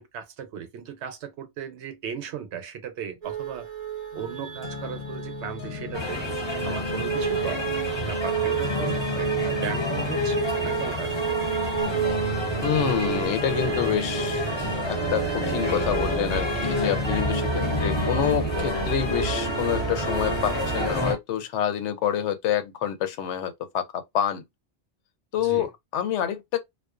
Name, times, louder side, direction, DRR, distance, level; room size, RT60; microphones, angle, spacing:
voice 1, 0.0-3.7 4.1-6.2 6.6-11.2 25.4-25.7, right 8 dB, 75° right, 0.9 m, -36 dB
sound 1, 3.2-21.1, right 7 dB, 40° right, 0.6 m, -31 dB
sound 2, 4.1-18.5, left 7 dB, 60° left, 0.8 m, -37 dB
sound 3, 5.9-21.1, left 1 dB, 30° left, 0.7 m, -30 dB
voice 2, 12.6-14.4 14.9-23.8 24.1-24.4 25.3-26.6, left 9 dB, 90° left, 0.9 m, -27 dB
2.4 x 2.1 x 2.3 m
omnidirectional pair, 1.2 m